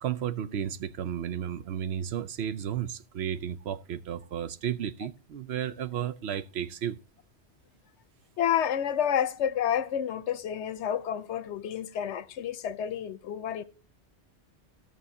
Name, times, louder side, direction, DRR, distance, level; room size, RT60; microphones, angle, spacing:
voice 1, 0.0-7.0, right 9 dB, 75° right, 0.9 m, -33 dB
voice 2, 8.4-13.6, left 9 dB, 90° left, 1.0 m, -29 dB
18.0 x 6.4 x 2.7 m
omnidirectional pair, 1.1 m